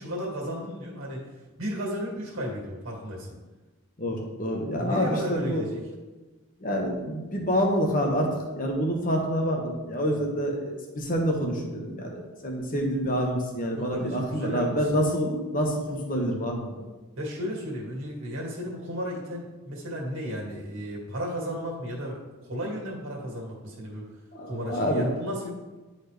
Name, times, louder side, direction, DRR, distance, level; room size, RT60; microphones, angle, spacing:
voice 1, 0.0-1.3 1.6-3.4 4.8-5.8 13.8-14.8 17.2-24.1 24.5-25.5, equal, 65° right, -2 dB, 2.1 m, -34 dB
voice 2, 4.0-5.7 6.6-16.8 24.3-25.1, equal, 35° left, 0 dB, 1.1 m, -27 dB
10.0 x 4.2 x 3.4 m, 1.2 s
head